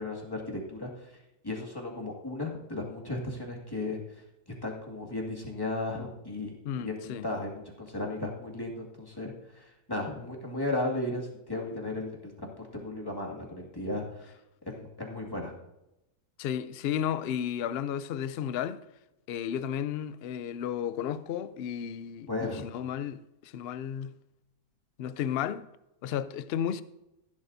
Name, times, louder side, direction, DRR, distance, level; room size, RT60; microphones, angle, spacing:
voice 1, 0.0-4.2 4.6-12.3 12.7-14.3 14.7-15.5 22.3-22.7, left 2 dB, 15° left, 2.1 m, -35 dB
voice 2, 6.6-7.3 16.4-18.8 19.3-24.1 25.0-25.7 26.0-26.8, left 9 dB, 70° left, 0.5 m, -33 dB
15.5 x 11.0 x 2.7 m
omnidirectional pair, 1.6 m